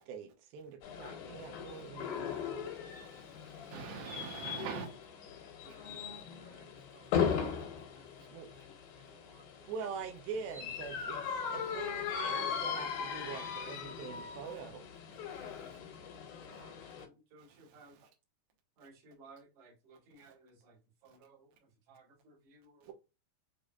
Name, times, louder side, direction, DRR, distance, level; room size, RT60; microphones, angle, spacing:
voice 1, 0.0-2.4 8.3-8.5 9.6-11.2 11.5-14.9 22.9-23.0, right 6 dB, 85° right, 2.6 m, -44 dB
sound 1, 0.8-17.1, left 7 dB, 85° left, 2.8 m, -39 dB
voice 2, 2.9-4.9 15.4-15.8 17.5-17.8 20.2-20.3, right 6 dB, 65° right, 1.8 m, -45 dB
voice 3, 5.6-7.3 7.7-9.7 16.5-18.0 18.8-22.9, right 3 dB, 50° right, 2.2 m, -61 dB
6.7 x 3.1 x 2.3 m
omnidirectional pair, 4.1 m